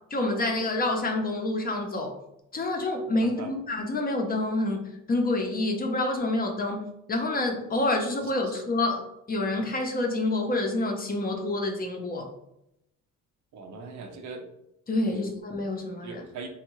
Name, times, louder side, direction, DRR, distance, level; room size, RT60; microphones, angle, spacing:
voice 1, 0.1-2.1 2.5-12.3 14.9-16.2, left 2 dB, 30° left, 2 dB, 0.7 m, -28 dB
voice 2, 13.5-14.5 15.1-15.2 16.0-16.5, right 4 dB, 70° right, 4 dB, 0.7 m, -40 dB
3.5 x 2.3 x 3.0 m, 0.83 s
cardioid pair, 90°, 30 cm